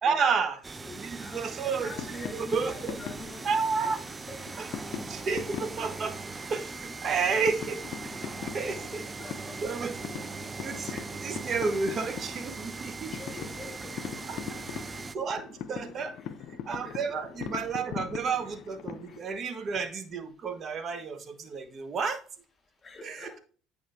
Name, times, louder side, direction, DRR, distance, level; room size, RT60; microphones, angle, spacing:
voice 1, 0.0-0.6 1.0-1.9 2.3-2.9 3.4-4.0 5.1-6.2 6.5-8.1 8.5-9.0 9.6-9.9 10.6-13.1 14.3-14.4 15.1-16.2 16.7-22.2, right 5 dB, 45° right, 1.3 m, -31 dB
sound 1, 0.6-15.2, right 4 dB, 25° right, 0.4 m, -40 dB
voice 2, 0.8-4.8 8.5-9.8 13.1-14.4 16.2-16.3 16.8-17.4 19.1-19.3 22.8-23.4, left 3 dB, 30° left, 3.5 m, -47 dB
sound 2, 1.8-19.2, left 8 dB, 60° left, 0.7 m, -42 dB
8.9 x 5.0 x 3.4 m
hypercardioid pair, 60°, 0 cm